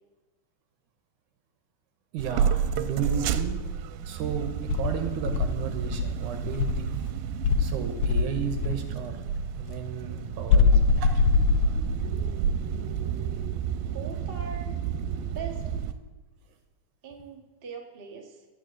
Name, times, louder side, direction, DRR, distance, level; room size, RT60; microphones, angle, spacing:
voice 1, 2.1-3.6 4.1-7.0 7.6-9.2 9.6-11.2, right 7 dB, 70° right, 6 dB, 2.3 m, -33 dB
sound 1, 2.2-15.9, right 8 dB, 90° right, 2.4 m, -31 dB
Insect, 4.7-6.9 7.4-8.8 10.5-12.2, left 4 dB, 75° left, 2.1 m, -23 dB
voice 2, 13.9-14.8 15.2-15.7 17.0-18.4, right 5 dB, 35° right, 0 dB, 0.9 m, -41 dB
12.0 x 9.0 x 7.5 m, 1.2 s
omnidirectional pair, 4.1 m